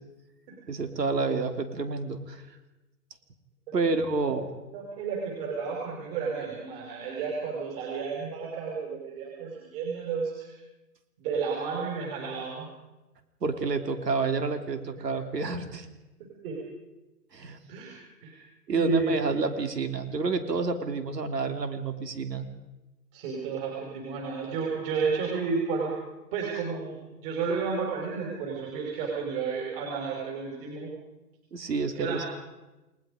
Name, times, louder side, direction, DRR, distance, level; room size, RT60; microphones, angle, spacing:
voice 1, 0.7-2.4 3.7-4.5 13.4-15.9 17.3-17.6 18.7-22.5 31.5-32.2, right 4 dB, 85° right, 7 dB, 3.2 m, -29 dB
voice 2, 4.7-10.5 11.2-12.7 16.4-16.6 17.7-17.9 18.2-18.4 18.7-19.4 23.1-25.9 26.3-30.9 32.0-32.3, right 5 dB, 35° right, -2 dB, 5.8 m, -32 dB
30.0 x 20.0 x 5.2 m, 1.0 s
hypercardioid pair, 150°, 48 cm